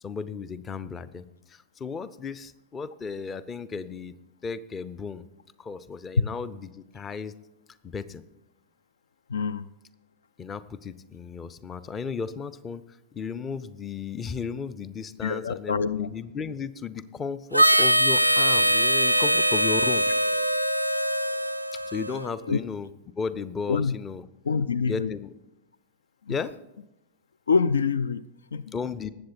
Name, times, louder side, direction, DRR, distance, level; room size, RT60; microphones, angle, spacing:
voice 1, 0.0-1.2 1.5-4.1 4.4-5.3 5.6-7.3 7.8-8.2 10.4-12.8 13.1-20.1 21.9-24.3 24.8-25.3 26.3-26.5 28.7-29.1, left 5 dB, 20° left, 16 dB, 0.6 m, -34 dB
voice 2, 9.3-9.7 15.2-16.1 22.5-22.6 23.7-23.9 24.5-25.2 26.3-26.4 27.5-28.7, left 5 dB, 70° left, 18 dB, 0.3 m, -26 dB
Harmonica, 17.5-22.3, right 1 dB, 90° right, 0.3 m, -22 dB
19.5 x 8.0 x 4.3 m, 0.93 s
figure-of-eight pair, 90°, 0 cm